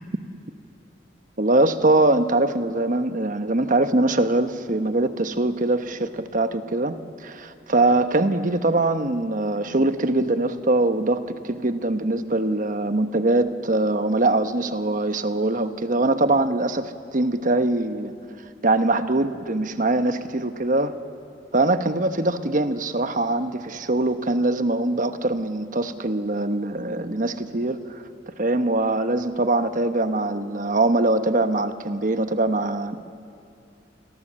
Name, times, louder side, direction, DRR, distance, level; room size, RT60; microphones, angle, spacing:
voice 1, 1.4-18.1 18.6-20.9 21.5-33.0, right 2 dB, 45° right, 9 dB, 1.1 m, -22 dB
28.5 x 22.0 x 7.6 m, 2.5 s
head